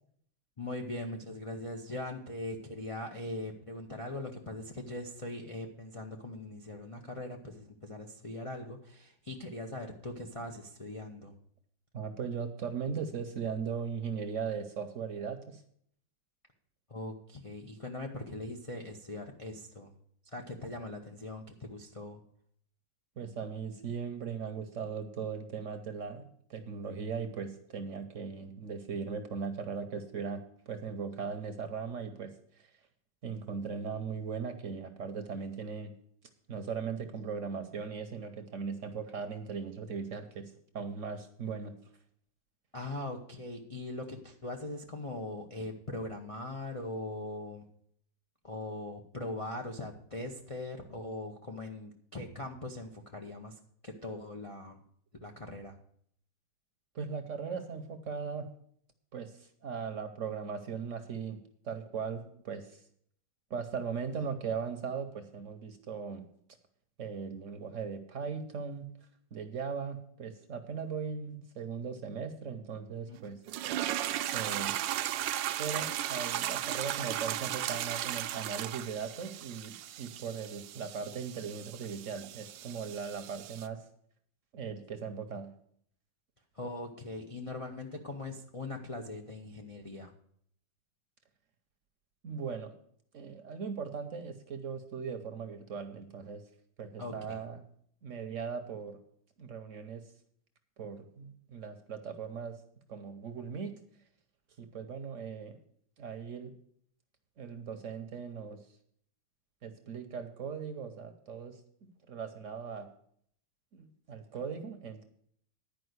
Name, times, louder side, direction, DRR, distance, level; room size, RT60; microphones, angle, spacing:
voice 1, 0.6-11.3 16.9-19.9 20.3-22.2 42.7-47.6 48.4-54.8 55.2-55.8 73.1-73.3 86.5-90.1 97.0-97.4, left 2 dB, 55° left, 0 dB, 0.3 m, -41 dB
voice 2, 11.9-15.6 23.2-26.2 26.5-32.7 33.2-35.9 36.5-41.8 56.9-58.5 59.1-61.4 61.6-62.8 63.5-66.3 67.0-68.9 69.3-73.4 74.3-74.8 75.6-83.8 84.5-85.5 92.2-92.7 93.1-96.4 96.8-97.6 98.0-99.0 99.4-100.0 100.8-102.6 102.9-103.7 104.6-105.6 106.0-106.5 107.4-108.6 109.6-112.9 113.7-115.0, right 6 dB, 55° right, 7 dB, 0.9 m, -38 dB
sound 1, 73.5-83.7, right 12 dB, 80° right, 1.2 m, -36 dB
10.5 x 5.0 x 7.9 m, 0.65 s
omnidirectional pair, 2.0 m